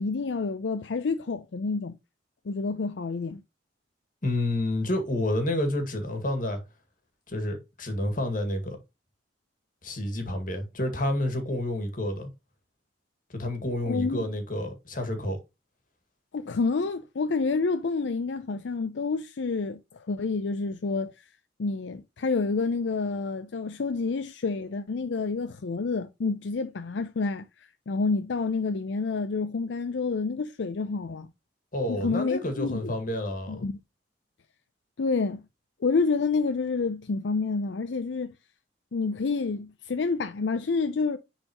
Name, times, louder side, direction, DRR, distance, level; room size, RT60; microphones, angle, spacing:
voice 1, 0.0-2.0 2.5-3.4 13.9-14.2 16.3-19.8 20.1-21.1 21.6-27.4 27.9-31.3 31.9-32.9 33.5-33.8 35.0-35.4 35.8-38.3 38.9-41.2, left 4 dB, 80° left, 0.5 m, -28 dB
voice 2, 4.2-6.6 7.3-8.8 9.8-12.3 13.3-15.4 31.7-33.6, left 1 dB, 50° left, 2.0 m, -29 dB
9.8 x 4.1 x 3.0 m
head